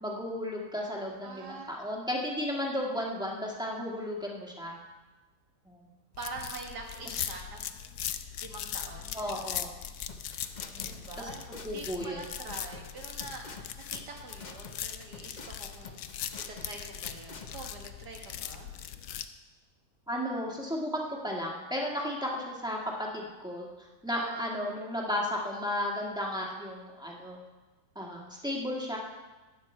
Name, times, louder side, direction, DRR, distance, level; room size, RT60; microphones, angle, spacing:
voice 1, 0.0-4.8 5.6-5.9 9.1-9.7 10.7-11.3 11.6-12.2 20.1-27.4 27.9-29.0, left 1 dB, 5° right, -2 dB, 1.5 m, -34 dB
voice 2, 1.2-1.7 6.2-7.6 8.4-9.5 10.7-11.5 11.7-13.5 13.8-16.0 16.5-18.7 24.1-24.5, right 3 dB, 75° right, 1 dB, 2.2 m, -44 dB
sound 1, 6.1-19.3, left 10 dB, 65° left, 1.0 m, -40 dB
sound 2, 10.1-17.7, left 4 dB, 40° left, 0.6 m, -47 dB
12.5 x 9.6 x 4.4 m, 1.2 s
omnidirectional pair, 1.8 m